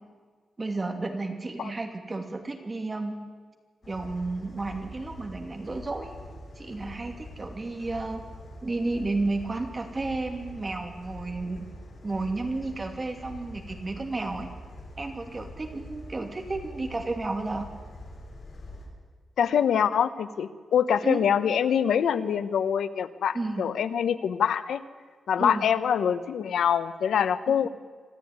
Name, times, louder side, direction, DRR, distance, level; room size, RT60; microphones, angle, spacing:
voice 1, 0.6-3.2 3.9-6.2 6.6-8.2 8.6-11.7 12.0-14.5 15.0-17.7 21.0-21.2 23.3-23.6 25.4-25.6 27.5-27.6, right 3 dB, 25° right, 4 dB, 2.8 m, -32 dB
sound 1, 3.8-18.9, left 1 dB, 50° left, 5.3 m, -44 dB
voice 2, 19.4-24.8 25.3-27.7, left 8 dB, 85° left, 12 dB, 1.1 m, -25 dB
25.5 x 13.5 x 9.6 m, 1.5 s
wide cardioid pair, 130°, 0 cm